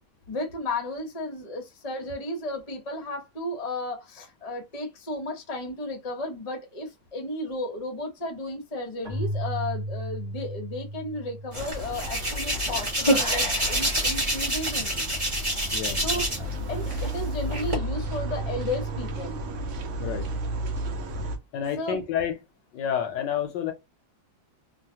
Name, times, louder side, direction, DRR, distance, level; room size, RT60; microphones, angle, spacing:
voice 1, 0.3-15.1 16.0-19.4 21.8-22.0, left 1 dB, 35° left, 0.6 m, -34 dB
Keyboard (musical), 9.1-12.6, equal, 45° right, 0.9 m, -35 dB
Hands, 11.5-16.5 16.8-17.7, equal, 15° right, 1.3 m, -27 dB
sound 1, 11.6-21.4, right 1 dB, 80° right, 0.6 m, -33 dB
voice 2, 21.5-22.4 22.7-23.7, left 8 dB, 70° left, 1.1 m, -29 dB
3.1 x 2.4 x 2.7 m
omnidirectional pair, 2.1 m